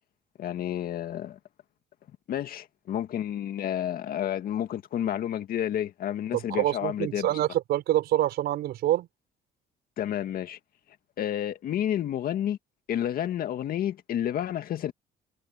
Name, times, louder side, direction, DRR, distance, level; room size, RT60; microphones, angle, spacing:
voice 1, 0.4-1.4 2.3-7.3 10.0-10.6 11.2-12.6 12.9-14.9, left 10 dB, 60° left, 1.9 m, -30 dB
voice 2, 6.3-9.1, right 13 dB, 75° right, 5.6 m, -26 dB
cardioid pair, 110°, 17 cm